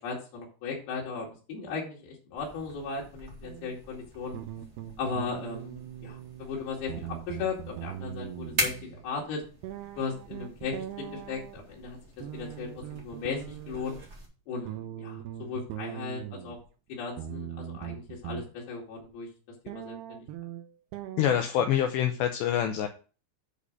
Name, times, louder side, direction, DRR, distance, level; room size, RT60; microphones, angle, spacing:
voice 1, 0.0-4.4 5.0-9.4 10.0-12.0 12.3-14.0 14.5-16.6 16.9-19.3 19.6-20.3, left 5 dB, 55° left, -3 dB, 3.8 m, -37 dB
sound 1, 2.4-14.2, right 1 dB, 35° right, 1.0 m, -41 dB
sound 2, 3.4-3.8 4.3-6.5 6.8-9.1 9.6-11.6 12.2-14.1 14.7-16.6 17.2-18.4 19.0-19.1 19.7-21.7, right 11 dB, 85° right, 2.4 m, -40 dB
voice 2, 21.2-22.9, left 10 dB, 80° left, 5 dB, 2.6 m, -26 dB
8.4 x 5.1 x 6.5 m, 0.36 s
omnidirectional pair, 5.7 m